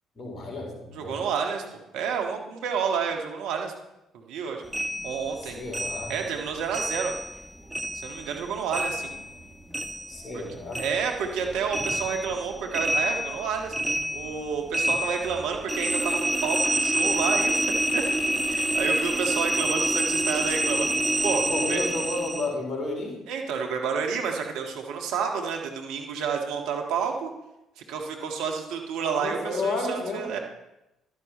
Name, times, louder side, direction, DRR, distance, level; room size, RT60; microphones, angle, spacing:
voice 1, 0.2-1.1 5.4-6.1 10.1-10.8 21.3-23.1 29.1-30.3, left 2 dB, 35° left, -1 dB, 4.4 m, -32 dB
voice 2, 0.9-3.7 4.1-4.6 5.0-5.6 6.1-7.1 8.0-9.1 10.3-10.4 10.7-13.7 14.1-18.0 18.5-21.8 23.3-27.3 27.9-30.4, right 6 dB, 75° right, 3 dB, 1.6 m, -30 dB
sound 1, 4.7-7.4 7.7-10.5 10.7-22.5, right 1 dB, 15° right, 1.1 m, -28 dB
12.0 x 10.0 x 4.3 m, 0.91 s
hypercardioid pair, 55°, 0 cm